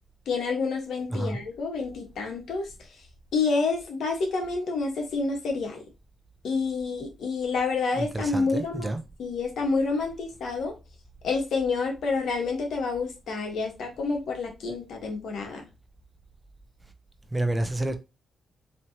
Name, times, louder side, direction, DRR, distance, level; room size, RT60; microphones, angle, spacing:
voice 1, 0.3-2.7 3.3-5.8 6.4-8.9 9.2-10.7 11.2-15.7, left 4 dB, 75° left, 1.3 m, -28 dB
voice 2, 8.1-9.0 17.3-17.9, right 1 dB, 15° right, 0.6 m, -28 dB
4.3 x 3.0 x 2.8 m
cardioid pair, 100°, 0 cm